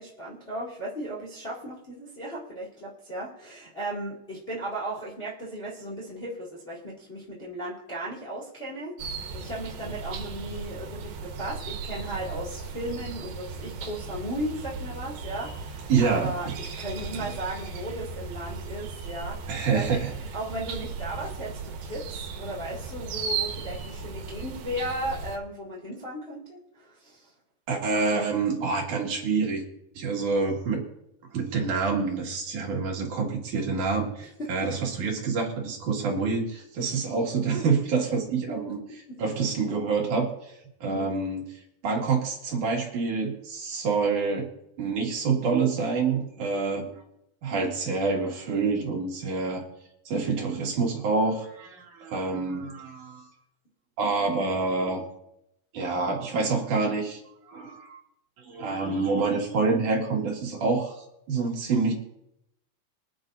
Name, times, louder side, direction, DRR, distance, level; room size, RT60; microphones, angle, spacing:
voice 1, 0.0-27.3 34.2-34.7 38.7-38.8 39.1-39.2 40.9-41.1 46.4-46.9, right 1 dB, 20° left, -5 dB, 2.0 m, -36 dB
sound 1, 9.0-25.4, right 5 dB, 90° right, 3.1 m, -36 dB
voice 2, 15.9-16.3 19.5-20.1 27.7-29.6 30.0-30.8 31.3-38.8 39.2-40.3 40.8-41.4 41.8-44.5 44.8-46.9 47.4-49.6 50.1-53.3 54.0-55.1 55.7-57.2 57.5-58.0 58.4-61.9, right 4 dB, 60° right, 0 dB, 3.3 m, -27 dB
25.0 x 9.0 x 2.6 m, 0.79 s
omnidirectional pair, 4.2 m